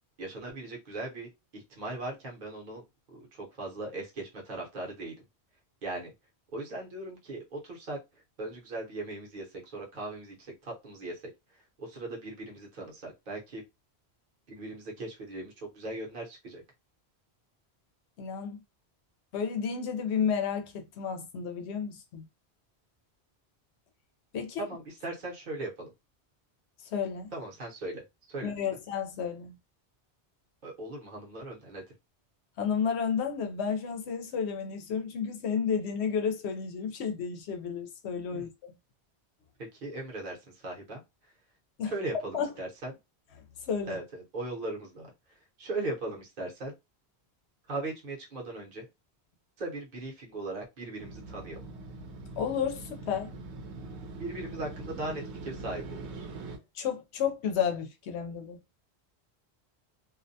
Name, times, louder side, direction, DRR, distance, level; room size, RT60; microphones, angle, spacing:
voice 1, 0.2-2.8 3.1-5.1 5.8-6.1 6.5-8.0 8.4-9.5 9.7-11.2 11.8-13.6 14.5-16.6 24.6-25.9 27.3-28.0 28.3-28.6 30.6-31.8 38.3-38.5 39.7-41.0 41.9-42.9 43.9-45.1 45.6-46.7 47.7-48.8 49.6-51.6 54.2-56.3, right 2 dB, 50° right, 0.9 m, -38 dB
voice 2, 18.2-18.6 19.3-22.3 24.3-24.7 26.9-27.3 28.4-29.6 32.6-38.7 41.8-41.9 42.3-42.5 43.6-44.0 52.4-53.3 56.8-58.6, left 7 dB, 80° left, 0.9 m, -31 dB
Motorcycle, 51.0-56.6, right 3 dB, 85° right, 0.9 m, -42 dB
2.4 x 2.1 x 2.6 m
omnidirectional pair, 1.1 m